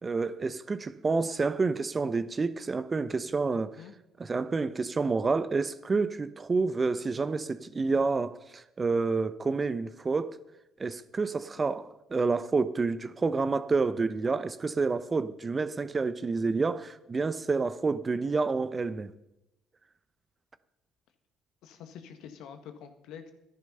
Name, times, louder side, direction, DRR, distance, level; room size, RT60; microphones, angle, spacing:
voice 1, 0.0-3.7 4.2-10.4 10.8-19.1, right 4 dB, 30° right, 0.8 m, -29 dB
voice 2, 3.5-3.9 6.8-6.9 11.5-11.8 21.6-23.3, left 8 dB, 70° left, 1.7 m, -47 dB
12.5 x 11.0 x 5.6 m
hypercardioid pair, 60°, 0 cm